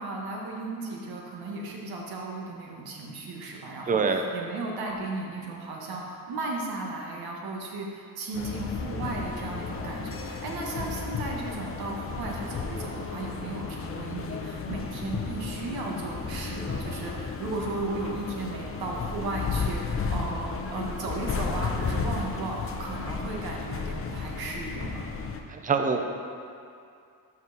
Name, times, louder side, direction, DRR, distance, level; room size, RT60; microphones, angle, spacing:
voice 1, 0.0-25.0, right 2 dB, 80° right, -1 dB, 1.4 m, -35 dB
voice 2, 3.9-4.2 25.5-26.0, right 5 dB, 25° right, 5 dB, 0.5 m, -24 dB
sound 1, 8.3-25.4, left 5 dB, 35° left, 0.6 m, -33 dB
5.9 x 5.6 x 5.9 m, 2.5 s
cardioid pair, 145°, 36 cm